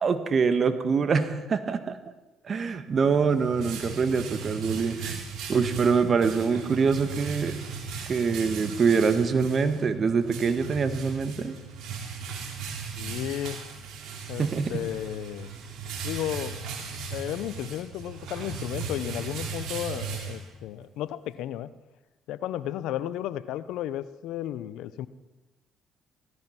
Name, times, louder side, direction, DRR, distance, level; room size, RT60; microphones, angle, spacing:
voice 1, 0.0-2.0 2.4-5.2 5.5-7.6 8.1-11.5 14.4-14.8, right 5 dB, 45° right, 10 dB, 1.6 m, -24 dB
sound 1, 3.0-20.9, right 5 dB, 70° right, 3.3 m, -37 dB
voice 2, 13.0-13.6 14.3-15.5 16.0-16.6 17.1-21.7 22.3-25.1, left 12 dB, 75° left, 16 dB, 0.7 m, -33 dB
17.5 x 14.0 x 5.9 m, 1.1 s
supercardioid pair, 65°, 0 cm